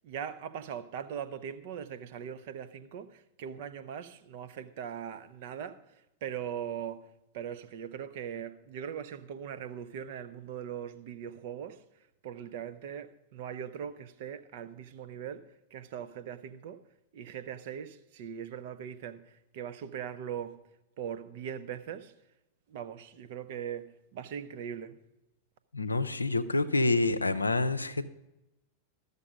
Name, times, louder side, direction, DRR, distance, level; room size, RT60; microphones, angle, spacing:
voice 1, 0.0-16.8 17.1-20.6 21.0-22.1 22.7-25.0, right 8 dB, 50° right, 0.7 m, -40 dB
voice 2, 25.7-28.1, left 2 dB, 80° left, 0.5 m, -27 dB
13.0 x 6.7 x 5.1 m
figure-of-eight pair, 90°, 0 cm